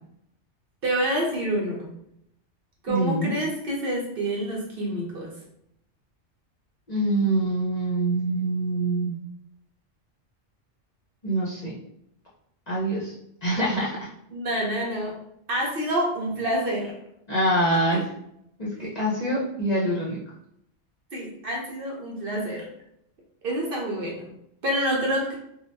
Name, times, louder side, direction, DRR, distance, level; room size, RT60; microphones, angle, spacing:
voice 1, 0.8-1.9 2.8-5.3 14.3-15.2 15.5-16.9 21.1-22.7 23.4-24.3 24.6-25.3, right 1 dB, 55° right, -2 dB, 0.8 m, -27 dB
voice 2, 2.9-3.3 6.9-9.1 11.2-11.7 12.7-13.1 13.4-14.0 17.3-18.0 18.6-20.2, right 1 dB, 45° left, -6 dB, 0.6 m, -25 dB
2.7 x 2.2 x 3.3 m, 0.74 s
omnidirectional pair, 1.2 m